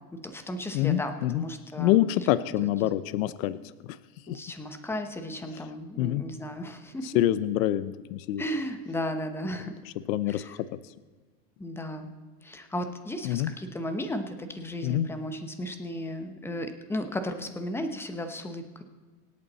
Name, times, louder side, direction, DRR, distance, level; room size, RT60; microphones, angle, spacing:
voice 1, 0.2-2.0 2.6-2.9 4.3-7.2 8.4-9.7 10.3-10.5 11.6-12.1 12.4-18.8, left 1 dB, 5° left, 7 dB, 0.9 m, -35 dB
voice 2, 0.7-1.4 1.8-3.6 3.8-4.0 4.3-4.4 6.0-6.2 7.0-8.4 10.1-10.7 13.2-13.5 14.8-15.1, left 13 dB, 55° left, 15 dB, 0.7 m, -26 dB
25.5 x 8.6 x 4.1 m, 1.4 s
supercardioid pair, 145°, 49 cm